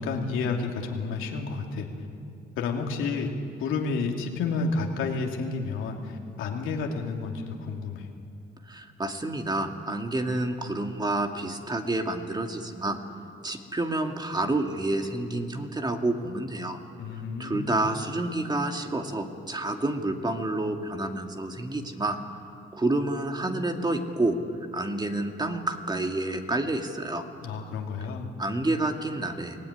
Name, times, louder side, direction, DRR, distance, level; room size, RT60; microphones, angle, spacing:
voice 1, 0.0-1.9 2.6-3.3 3.6-8.1 17.0-17.8 27.4-28.3, left 4 dB, 85° left, 1 dB, 2.7 m, -30 dB
voice 2, 8.7-13.0 13.4-16.8 17.4-22.2 22.7-24.4 24.7-27.2 28.4-29.6, right 2 dB, 20° right, 4 dB, 2.1 m, -29 dB
24.0 x 17.5 x 9.9 m, 2.6 s
cardioid pair, 90°, 20 cm